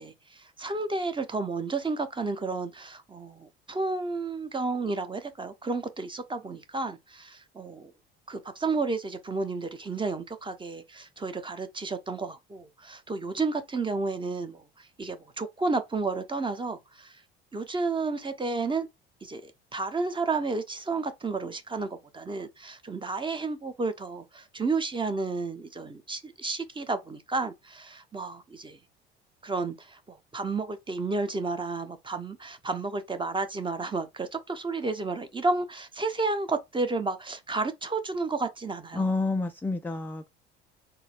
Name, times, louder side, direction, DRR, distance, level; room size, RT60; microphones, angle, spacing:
voice 1, 0.0-7.9 8.3-17.2 17.5-18.9 19.2-28.8 29.4-39.1, right 3 dB, 15° right, 0.8 m, -32 dB
voice 2, 38.9-40.3, left 3 dB, 5° left, 0.3 m, -29 dB
3.9 x 2.1 x 3.9 m
hypercardioid pair, 65°, 31 cm